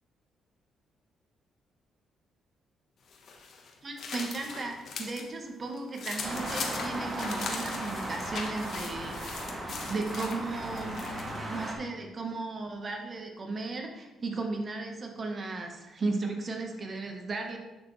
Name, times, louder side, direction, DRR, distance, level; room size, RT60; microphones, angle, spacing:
sound 1, 3.1-5.3 5.6-11.4, left 4 dB, 60° left, 1.2 m, -40 dB
voice 1, 3.8-11.0 11.5-17.6, right 3 dB, 40° right, 3 dB, 1.3 m, -35 dB
sound 2, 6.2-11.7, right 1 dB, 20° right, 1.7 m, -37 dB
9.3 x 6.7 x 3.3 m, 1.0 s
cardioid pair, 90°, 0 cm